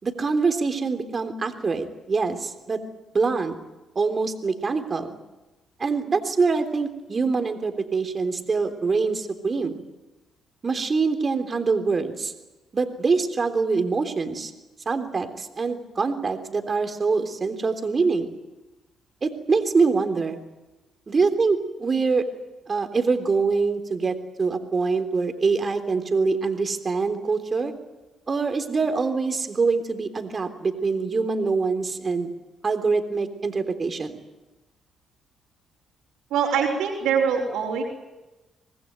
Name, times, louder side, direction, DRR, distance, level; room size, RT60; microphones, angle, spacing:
voice 1, 0.0-2.8 3.1-3.6 3.9-5.1 5.8-9.7 10.6-12.3 12.7-14.5 14.8-18.3 19.2-20.4 21.1-22.3 22.7-27.7 28.3-32.3 32.6-34.2, right 4 dB, 40° right, 7 dB, 3.5 m, -24 dB
voice 2, 36.3-37.8, right 6 dB, 75° right, -7 dB, 4.7 m, -23 dB
25.0 x 19.5 x 9.3 m, 1.1 s
hypercardioid pair, 40°, 0 cm